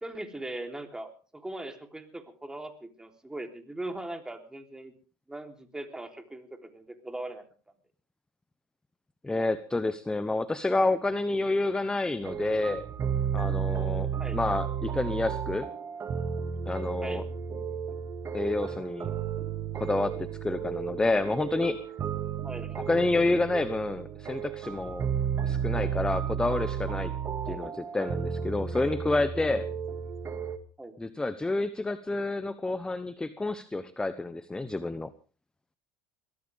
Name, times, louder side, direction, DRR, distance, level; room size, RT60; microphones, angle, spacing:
voice 1, 0.0-4.9 5.3-7.4 14.2-14.4 17.0-17.2 22.4-22.8 27.5-27.7 30.8-30.9, right 1 dB, 10° right, 5 dB, 3.5 m, -40 dB
voice 2, 9.2-12.8 13.3-15.7 16.7-17.2 18.3-19.1 19.7-21.8 22.9-25.1 25.4-27.1 27.5-29.7 31.0-35.1, left 2 dB, 10° left, 13 dB, 0.9 m, -29 dB
sound 1, 12.2-30.6, right 8 dB, 35° right, 2.1 m, -33 dB
23.0 x 16.5 x 3.6 m, 0.38 s
supercardioid pair, 115°, 9 cm